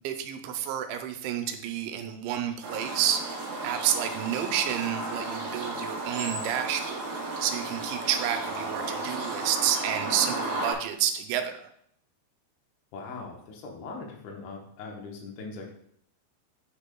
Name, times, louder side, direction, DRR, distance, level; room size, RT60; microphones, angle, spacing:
voice 1, 0.0-3.2 3.6-11.7, right 10 dB, 90° right, 7 dB, 3.0 m, -30 dB
sound 1, 2.6-10.7, right 2 dB, 70° right, 3.4 m, -34 dB
voice 2, 12.9-15.7, left 4 dB, 80° left, 1 dB, 3.5 m, -40 dB
9.8 x 5.1 x 2.2 m, 0.69 s
omnidirectional pair, 5.3 m